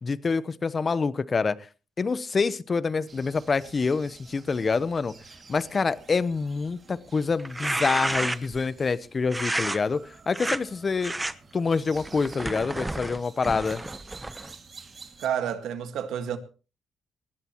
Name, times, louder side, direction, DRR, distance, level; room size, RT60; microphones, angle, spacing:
voice 1, 0.0-1.6 2.0-5.1 5.5-11.1 11.5-13.8, left 4 dB, 35° left, 0.9 m, -26 dB
sound 1, 3.1-15.3, right 4 dB, 40° right, 2.3 m, -50 dB
sound 2, 7.4-8.6 9.3-9.8 10.3-10.6 11.0-11.3 11.9-14.5, right 2 dB, 15° right, 0.9 m, -31 dB
voice 2, 15.2-16.4, right 9 dB, 80° right, 1.8 m, -29 dB
19.5 x 15.5 x 3.0 m
cardioid pair, 90°, 0 cm